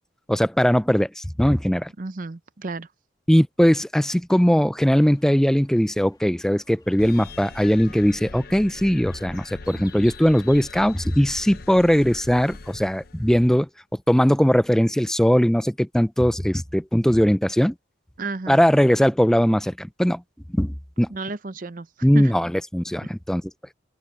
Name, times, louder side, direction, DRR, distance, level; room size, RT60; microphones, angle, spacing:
voice 1, 0.3-1.9 3.3-13.7 14.1-17.7 18.5-20.2 20.5-21.1 22.0-23.4, equal, 5° left, 0.4 m, -20 dB
voice 2, 2.0-2.9 18.2-18.7 21.1-22.3 23.0-23.1, right 3 dB, 45° right, 0.7 m, -33 dB
sound 1, 4.8-10.8, left 4 dB, 20° left, 3.1 m, -54 dB
sound 2, 7.0-13.6, left 3 dB, 55° left, 0.8 m, -41 dB
open air
head